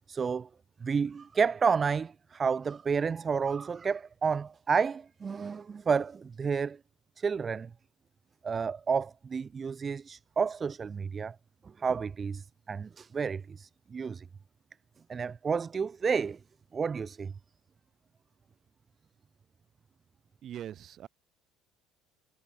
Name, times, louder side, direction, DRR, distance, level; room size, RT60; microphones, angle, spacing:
voice 1, 0.1-0.5 0.8-6.8 7.2-7.7 8.4-11.3 11.8-14.2 15.1-16.4 16.7-17.3, right 5 dB, 25° right, 0.8 m, -30 dB
voice 2, 20.4-21.1, right 10 dB, 45° right, 6.4 m, -41 dB
cardioid pair, 120°, 0 cm